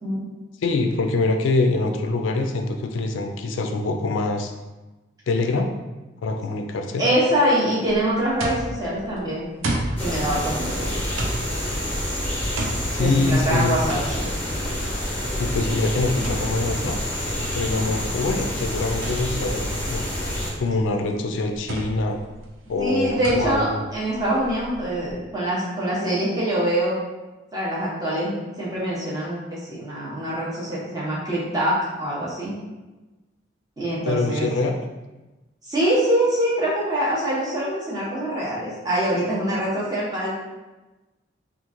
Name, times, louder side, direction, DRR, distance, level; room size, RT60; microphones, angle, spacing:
voice 1, 0.6-4.5 5.3-5.7 6.2-7.0 12.9-13.8 15.4-17.0 17.5-20.0 20.6-22.2 22.7-23.8 34.1-34.7, left 3 dB, 80° left, 5 dB, 0.4 m, -24 dB
voice 2, 7.0-9.5 10.0-10.9 13.0-14.3 22.8-26.9 27.5-32.6 33.8-34.5 35.6-40.3, right 1 dB, 20° right, -7 dB, 0.9 m, -24 dB
sound 1, 7.9-25.1, right 1 dB, 90° right, 0.6 m, -34 dB
sound 2, 10.0-20.5, equal, 10° left, 0.7 m, -28 dB
3.0 x 2.4 x 3.7 m, 1.1 s
head